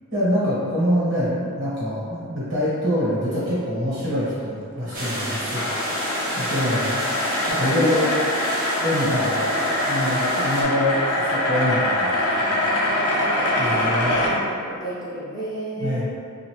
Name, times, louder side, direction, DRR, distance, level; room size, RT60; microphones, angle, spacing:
voice 1, 0.1-7.0 7.5-8.1 8.8-9.4 9.9-12.1 12.4-12.6 13.6-14.2 15.8-16.0, equal, 60° right, -10 dB, 1.3 m, -25 dB
sound 1, 4.8-14.3, left 1 dB, 75° left, 0.6 m, -24 dB
sound 2, 4.9-10.6, equal, 40° right, 0.6 m, -30 dB
voice 2, 7.6-8.1 9.3-10.0 12.7-16.0, equal, 15° left, -8 dB, 0.6 m, -32 dB
2.6 x 2.5 x 3.1 m, 2.3 s
head